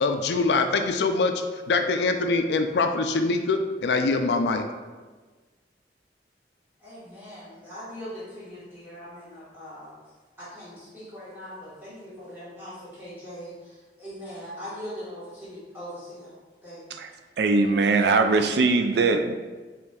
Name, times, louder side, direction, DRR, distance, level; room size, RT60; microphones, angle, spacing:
voice 1, 0.0-4.6, left 3 dB, 75° left, 6 dB, 0.4 m, -24 dB
voice 2, 6.8-9.9 10.4-16.3 16.6-16.9, equal, 10° right, -11 dB, 1.4 m, -41 dB
voice 3, 17.4-19.3, right 3 dB, 70° right, 7 dB, 0.4 m, -21 dB
5.9 x 3.1 x 2.4 m, 1.3 s
head